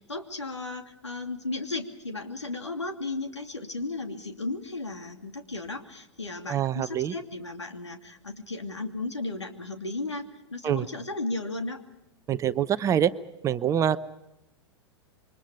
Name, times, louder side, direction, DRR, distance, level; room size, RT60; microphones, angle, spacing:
voice 1, 0.0-10.2 10.5-11.8, left 2 dB, 80° left, 4 dB, 2.7 m, -35 dB
voice 2, 6.5-7.1 10.6-10.9 12.3-13.1 13.4-14.0, right 10 dB, 20° right, 14 dB, 0.8 m, -25 dB
28.0 x 24.0 x 5.0 m, 0.87 s
figure-of-eight pair, 100°, 15 cm